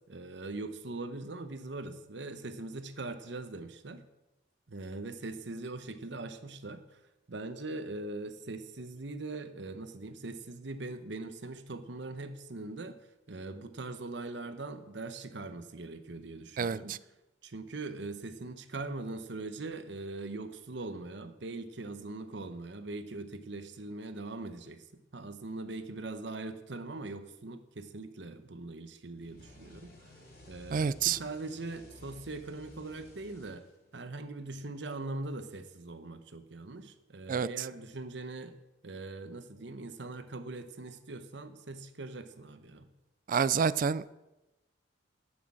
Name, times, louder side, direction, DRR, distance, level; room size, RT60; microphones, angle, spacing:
voice 1, 0.1-4.0 4.7-7.0 7.3-13.0 13.3-17.0 17.4-30.1 30.5-33.6 33.9-38.5 38.8-42.9, right 2 dB, 70° right, 9 dB, 1.0 m, -41 dB
voice 2, 16.6-17.0 30.7-31.2 37.3-37.5 43.3-44.0, right 6 dB, 45° right, 17 dB, 0.3 m, -28 dB
sound 1, 29.2-34.1, left 1 dB, 50° left, 3.6 m, -55 dB
11.0 x 6.3 x 7.7 m, 0.99 s
head